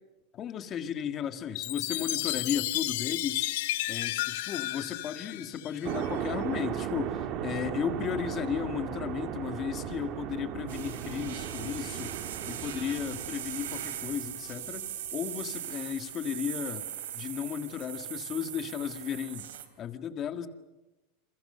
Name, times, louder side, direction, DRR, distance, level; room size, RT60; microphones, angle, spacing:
voice 1, 0.3-3.5 3.9-12.1 12.5-14.9 15.1-16.9 17.1-19.5 19.8-20.5, left 8 dB, 25° left, 8 dB, 1.8 m, -34 dB
Chime, 1.6-6.1, left 17 dB, 60° left, 1.3 m, -32 dB
sound 1, 5.8-14.9, right 9 dB, 35° right, 2.1 m, -37 dB
sound 2, 10.7-19.7, right 11 dB, 80° right, 3.7 m, -39 dB
28.5 x 28.5 x 6.8 m, 1.1 s
supercardioid pair, 170°, 0 cm